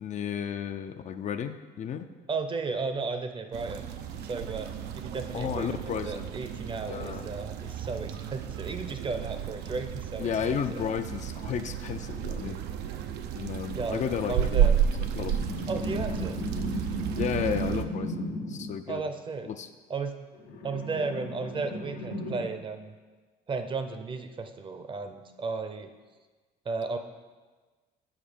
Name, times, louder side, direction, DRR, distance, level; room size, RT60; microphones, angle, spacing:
voice 1, 0.0-2.1 5.3-6.3 6.9-7.3 10.2-12.6 13.3-14.7 15.0-16.3 17.2-19.0 19.4-19.7, left 8 dB, 45° left, 9 dB, 0.4 m, -33 dB
voice 2, 2.3-3.9 4.3-4.7 4.9-10.8 13.7-14.0 14.3-14.7 15.7-16.4 18.9-19.5 19.9-20.1 20.6-22.9 23.5-25.9 26.7-27.0, right 4 dB, 30° right, 8 dB, 0.6 m, -34 dB
sound 1, 3.5-17.8, right 9 dB, 85° right, 0.6 m, -32 dB
sound 2, 15.2-18.8 20.3-22.4, left 1 dB, 80° left, 1.0 m, -35 dB
7.3 x 5.8 x 5.1 m, 1.3 s
cardioid pair, 110°, 17 cm